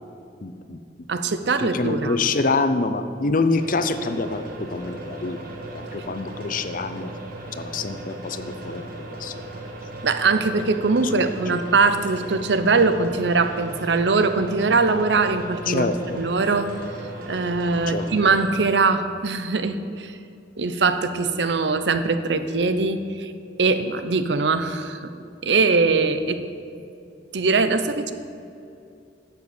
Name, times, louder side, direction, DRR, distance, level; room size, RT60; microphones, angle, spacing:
voice 1, 0.4-0.8 1.6-5.4 5.7-7.1 7.6-8.8 9.1-9.3 11.1-11.3 15.7-16.2 17.9-18.0, left 3 dB, 50° left, 10 dB, 0.7 m, -26 dB
voice 2, 1.1-2.2 10.0-15.9 16.2-16.8 17.3-20.2 20.6-23.3 23.6-25.1 25.4-26.4 27.3-28.1, right 4 dB, 75° right, 10 dB, 0.7 m, -22 dB
sound 1, 3.6-18.4, right 2 dB, 55° right, 1.7 m, -37 dB
10.5 x 7.7 x 7.1 m, 2.6 s
head